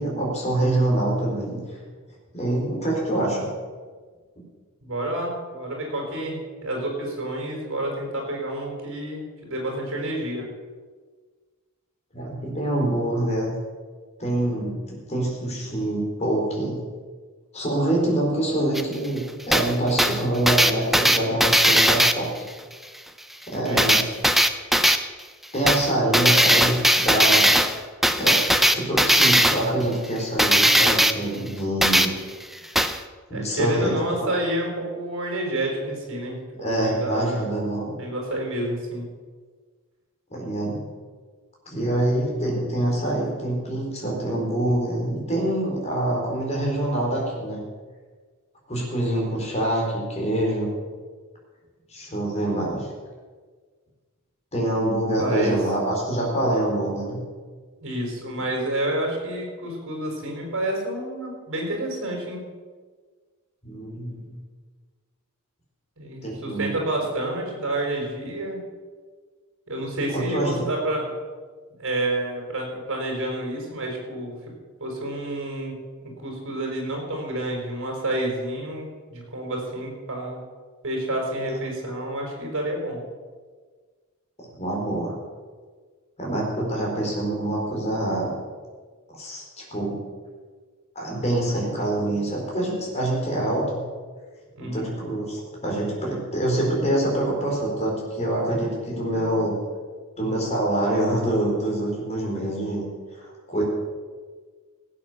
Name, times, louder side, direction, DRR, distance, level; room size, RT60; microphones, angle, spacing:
voice 1, 0.0-1.6 2.3-3.5 12.1-13.5 14.2-16.8 17.5-22.3 23.5-24.0 24.8-24.9 25.5-27.5 27.8-27.9 28.1-32.1 33.3-34.3 36.5-37.9 40.3-40.9 41.7-47.6 48.7-50.7 51.9-52.9 54.5-57.2 63.6-64.4 66.2-66.7 70.1-70.7 84.4-85.1 86.2-88.3 89.1-89.4 89.7-90.0 90.9-93.8 94.6-99.6 100.2-102.8 103.2-103.6, right 1 dB, 30° left, -2 dB, 4.3 m, -25 dB
voice 2, 4.8-10.4 23.6-24.0 33.3-37.5 38.0-39.1 55.2-55.6 57.8-62.4 66.0-68.6 69.7-71.1 71.8-74.4 74.8-75.7 76.0-80.4 80.8-83.0 94.5-95.0, right 1 dB, 60° right, 0 dB, 5.1 m, -29 dB
sound 1, 18.7-18.8 19.5-19.7 20.0-22.1 23.8-25.0 25.7-25.9 26.1-27.8 28.0-29.7 30.4-31.1 31.8-32.1 32.8-33.0, equal, ahead, 0.6 m, -18 dB
17.0 x 8.5 x 6.9 m, 1.5 s
head